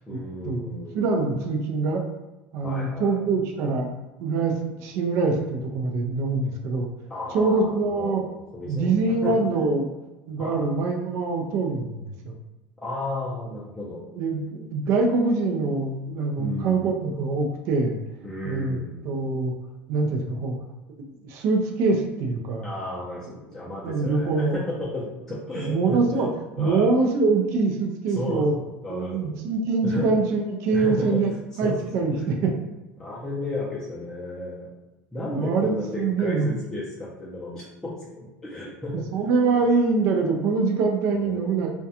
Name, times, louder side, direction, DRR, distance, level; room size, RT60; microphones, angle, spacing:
voice 1, 0.1-1.2 2.6-3.3 6.3-6.4 7.1-9.3 10.4-10.7 12.8-14.0 16.4-16.9 18.2-18.9 22.6-26.2 26.6-26.9 28.1-28.6 28.8-29.4 29.8-30.1 30.7-31.7 32.1-32.3 33.0-34.7 35.1-39.1 41.1-41.6, left 1 dB, 10° left, -7 dB, 0.5 m, -33 dB
voice 2, 0.9-2.0 2.5-3.9 4.2-6.9 7.3-8.2 8.6-9.9 10.3-12.4 14.2-18.0 18.4-18.8 19.0-19.5 19.9-20.5 21.1-22.6 23.8-24.6 25.7-26.3 26.6-28.5 28.9-31.3 31.6-32.5 35.3-35.7 36.0-36.5 39.1-41.7, right 3 dB, 60° right, 2 dB, 0.4 m, -24 dB
2.3 x 2.2 x 2.7 m, 1.1 s
supercardioid pair, 130°, 6 cm